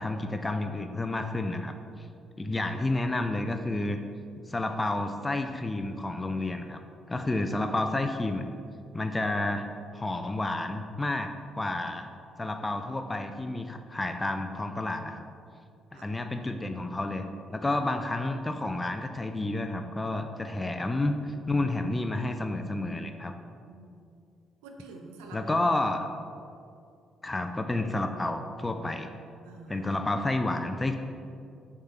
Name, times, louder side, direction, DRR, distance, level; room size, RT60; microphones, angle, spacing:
voice 1, 0.0-2.1 2.4-4.0 4.5-6.8 7.1-8.5 8.9-9.7 9.9-11.3 11.6-12.1 12.4-15.2 15.9-23.3 25.3-26.0 27.2-29.1 29.7-31.0, left 2 dB, 20° left, 6 dB, 0.4 m, -30 dB
voice 2, 23.7-24.0 24.6-25.7 29.4-29.9, right 3 dB, 70° right, 3 dB, 0.5 m, -47 dB
6.4 x 3.6 x 4.2 m, 2.4 s
figure-of-eight pair, 45°, 0 cm